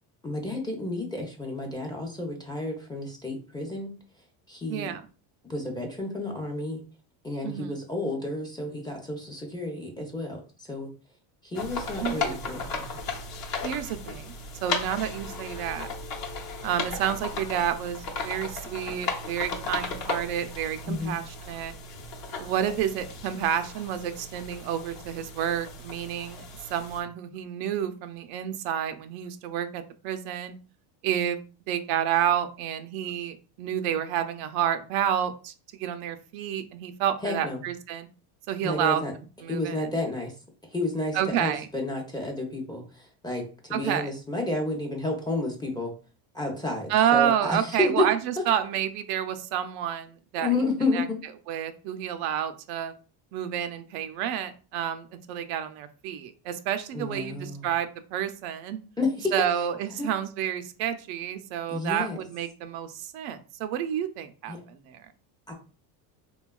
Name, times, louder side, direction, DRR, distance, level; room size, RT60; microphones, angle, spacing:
voice 1, 0.2-3.9 4.5-4.9 5.5-6.8 7.2-10.9 11.4-13.0 20.9-21.2 37.2-37.6 38.6-39.1 39.5-40.4 40.6-45.9 46.3-48.1 48.4-48.5 50.4-51.2 56.9-57.7 59.0-59.5 60.0-60.1 61.7-62.2 64.5-64.6 65.5-65.6, left 2 dB, 10° left, 1 dB, 0.5 m, -31 dB
voice 2, 4.7-5.0 7.4-7.7 12.0-12.4 13.6-14.4 14.6-15.9 16.6-21.7 22.4-26.4 26.7-30.5 31.0-31.4 31.7-38.1 38.5-39.0 39.4-39.8 41.1-41.7 43.7-44.1 46.9-48.2 48.5-50.5 50.9-51.0 51.5-52.9 53.3-58.8 59.3-65.0, right 10 dB, 80° right, 9 dB, 0.6 m, -29 dB
sound 1, 11.5-27.0, left 3 dB, 45° left, 0.8 m, -36 dB
3.4 x 2.3 x 2.2 m, 0.36 s
cardioid pair, 120°, 48 cm